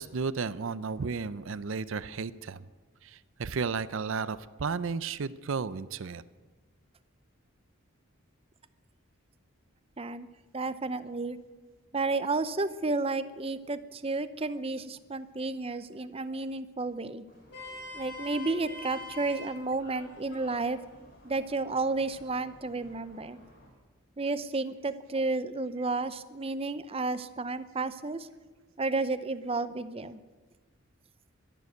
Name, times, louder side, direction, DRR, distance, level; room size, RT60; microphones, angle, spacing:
voice 1, 0.0-2.7 3.0-6.2, right 5 dB, 65° right, 15 dB, 0.5 m, -33 dB
voice 2, 10.0-10.3 10.5-11.4 11.9-17.2 17.9-20.8 21.2-23.4 24.2-28.3 28.8-30.2, right 3 dB, 25° right, 13 dB, 0.6 m, -32 dB
Vehicle horn car horn honking, 17.3-23.7, left 2 dB, 55° left, 4.7 m, -47 dB
12.5 x 11.0 x 9.3 m, 1.3 s
head